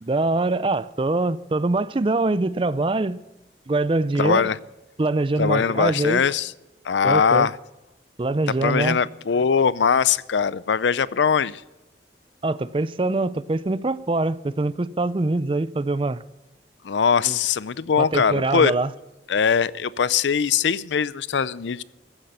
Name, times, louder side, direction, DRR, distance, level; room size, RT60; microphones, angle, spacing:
voice 1, 0.0-3.2 3.7-4.5 5.0-6.2 7.0-7.5 8.2-9.0 12.4-16.2 17.2-17.4 18.0-18.9, right 2 dB, 30° right, 0.4 m, -23 dB
voice 2, 4.2-4.6 5.4-6.5 6.8-7.5 8.6-11.6 16.8-18.7 19.3-21.8, left 6 dB, 85° left, 0.5 m, -21 dB
15.0 x 10.0 x 6.9 m
head